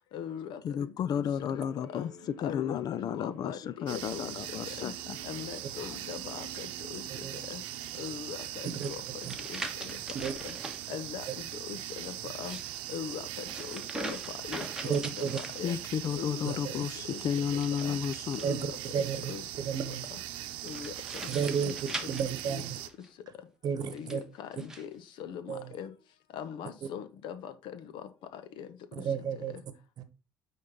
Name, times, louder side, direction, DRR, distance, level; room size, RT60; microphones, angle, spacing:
voice 1, 0.1-0.9 1.1-1.6 1.9-2.1 2.4-4.3 4.7-4.9 5.2-7.6 8.0-9.0 9.5-10.0 10.4-10.5 10.9-12.6 12.9-14.2 14.4-15.8 16.1-16.8 17.1-17.9 18.4-18.7 18.9-19.4 20.1-20.2 20.6-20.9 21.2-21.3 21.6-22.1 22.5-22.6 23.9-25.9 26.3-28.7, left 8 dB, 70° left, 1.0 m, -41 dB
voice 2, 0.6-5.2 5.8-6.0 15.6-18.4, left 8 dB, 50° left, 0.4 m, -33 dB
sound 1, 1.3-8.5, right 2 dB, 20° left, 3.5 m, -53 dB
sound 2, 3.9-22.9, right 14 dB, 85° right, 0.8 m, -40 dB
sound 3, 8.8-10.8 12.2-16.1 17.5-18.8 20.7-23.1 23.8-24.9, right 2 dB, 5° right, 1.3 m, -42 dB
voice 3, 14.9-15.4 16.5-16.6 18.4-19.3 19.6-20.1 21.3-21.7 22.1-22.7 23.6-24.2 25.5-25.7 29.0-29.6 30.0-30.1, right 7 dB, 50° right, 1.1 m, -32 dB
9.5 x 3.8 x 3.8 m
cardioid pair, 100°, 9 cm